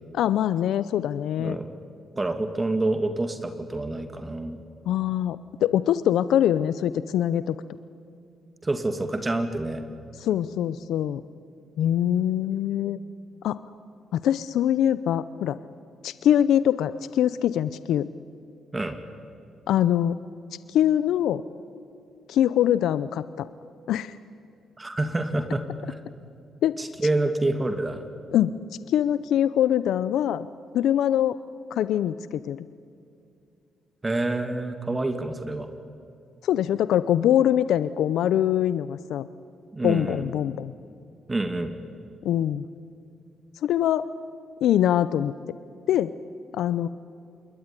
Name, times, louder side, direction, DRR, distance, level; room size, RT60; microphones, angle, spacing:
voice 1, 0.1-1.6 4.9-7.6 10.2-11.2 11.8-13.0 13.4-13.6 14.1-15.6 16.0-18.1 19.7-20.2 20.7-21.4 22.3-23.5 23.9-24.1 26.6-26.8 28.3-28.5 28.9-30.5 30.7-31.4 31.7-32.6 36.4-39.3 39.8-40.7 42.2-42.7 43.6-44.0 44.6-45.3 45.9-46.1 46.5-46.9, left 11 dB, 80° left, 15 dB, 0.6 m, -23 dB
voice 2, 2.2-4.6 8.6-9.8 18.7-19.0 24.8-26.0 26.8-28.0 34.0-35.7 39.7-40.3 41.3-41.7, right 2 dB, 20° right, 8 dB, 2.3 m, -27 dB
27.5 x 21.5 x 9.8 m, 2.5 s
cardioid pair, 80°, 0 cm